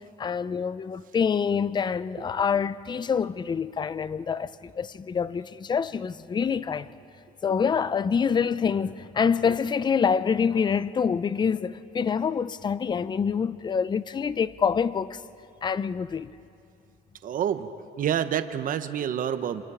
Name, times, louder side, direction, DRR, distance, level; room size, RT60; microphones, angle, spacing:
voice 1, 0.2-6.9 7.4-15.2 15.6-16.3, left 6 dB, 25° left, 0.6 m, -26 dB
voice 2, 17.2-17.7 18.0-19.6, right 9 dB, 55° right, 1.0 m, -27 dB
27.5 x 26.5 x 5.0 m
cardioid pair, 110°, 17 cm